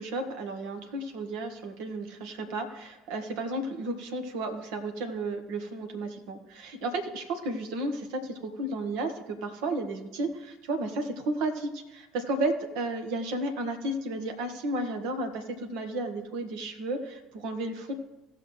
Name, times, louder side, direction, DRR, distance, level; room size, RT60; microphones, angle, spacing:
voice 1, 0.0-17.9, right 2 dB, 65° right, 6 dB, 1.3 m, -33 dB
17.5 x 7.0 x 3.2 m, 1.1 s
figure-of-eight pair, 60°, 0 cm